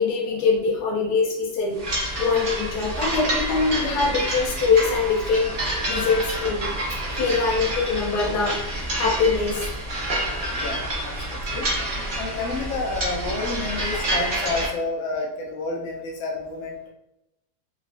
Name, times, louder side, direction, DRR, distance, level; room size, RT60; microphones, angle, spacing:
voice 1, 0.0-10.0, left 4 dB, 65° left, -2 dB, 1.2 m, -24 dB
sound 1, 1.8-14.7, right 1 dB, 55° right, 0.5 m, -28 dB
voice 2, 10.5-11.7 12.2-16.8, left 3 dB, 85° left, -2 dB, 1.4 m, -30 dB
4.1 x 2.0 x 2.5 m, 0.85 s
omnidirectional pair, 2.0 m